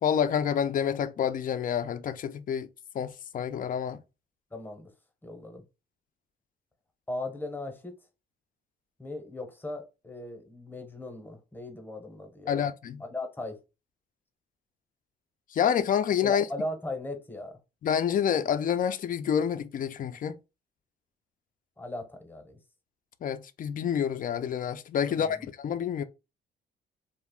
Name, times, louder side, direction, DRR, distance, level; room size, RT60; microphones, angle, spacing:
voice 1, 0.0-2.7 2.9-4.0 12.5-13.0 15.5-16.5 17.8-20.4 23.2-26.0, left 8 dB, 45° left, 0.4 m, -28 dB
voice 2, 4.5-4.9 5.2-5.6 7.1-7.9 9.0-12.7 13.1-13.6 16.2-17.6 21.8-22.6 25.1-25.5, left 2 dB, 10° left, 0.8 m, -38 dB
2.3 x 2.0 x 3.6 m
cardioid pair, 90°, 20 cm